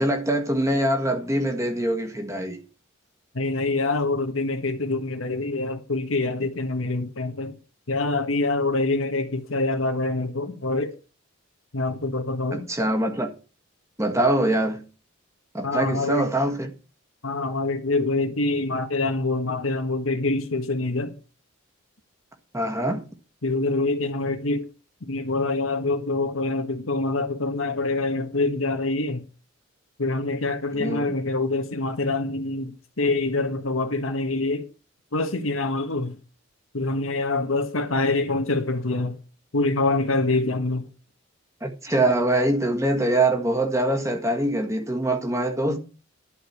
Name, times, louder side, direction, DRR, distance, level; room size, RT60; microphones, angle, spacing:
voice 1, 0.0-2.6 12.5-13.3 14.0-14.8 15.5-16.7 22.5-23.1 30.7-31.2 41.6-45.8, right 1 dB, 15° right, 1.6 m, -23 dB
voice 2, 3.3-7.5 7.9-10.9 11.7-12.7 15.6-16.3 17.2-21.2 23.4-24.7 25.0-29.2 30.0-34.7 35.1-36.2 36.7-39.2 39.5-40.9, left 2 dB, 85° left, 1.5 m, -25 dB
11.5 x 4.9 x 7.2 m
head